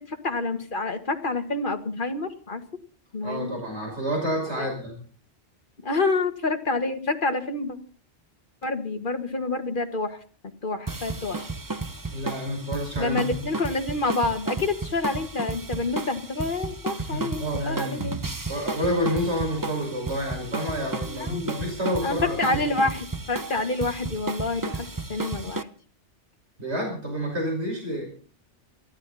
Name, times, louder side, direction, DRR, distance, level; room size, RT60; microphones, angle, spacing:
voice 1, 0.1-2.6 3.1-3.5 4.6-4.7 5.8-7.8 8.6-10.2 10.6-11.5 13.0-18.2 21.1-21.6 22.0-25.7, left 3 dB, 45° left, 6 dB, 2.0 m, -28 dB
voice 2, 3.2-5.0 12.1-13.3 17.1-22.9 26.6-28.1, equal, 70° right, 0 dB, 6.1 m, -29 dB
sound 1, 10.9-25.6, right 3 dB, 20° right, 0.8 m, -33 dB
23.0 x 14.5 x 4.2 m, 0.41 s
omnidirectional pair, 1.2 m